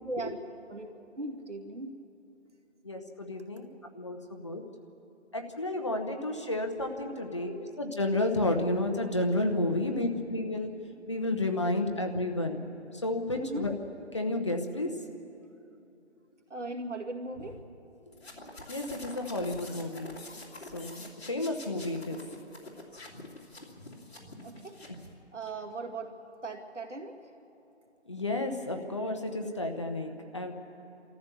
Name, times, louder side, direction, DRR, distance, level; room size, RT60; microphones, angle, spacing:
voice 1, 0.0-0.4 0.7-0.9 1.2-1.9 13.4-13.7 16.5-17.6 24.4-24.8 25.3-26.2 26.4-27.2, right 2 dB, 90° right, 4 dB, 2.4 m, -38 dB
voice 2, 2.8-3.7 3.9-4.6 5.3-10.7 11.1-12.6 13.0-13.7 14.1-14.9 18.7-20.2 20.7-21.0 21.3-22.2 28.1-30.5, left 2 dB, 25° left, 4 dB, 0.9 m, -31 dB
sound 1, 18.1-25.1, left 2 dB, 60° left, 2.7 m, -46 dB
28.5 x 14.0 x 7.0 m, 2.8 s
figure-of-eight pair, 170°, 35 cm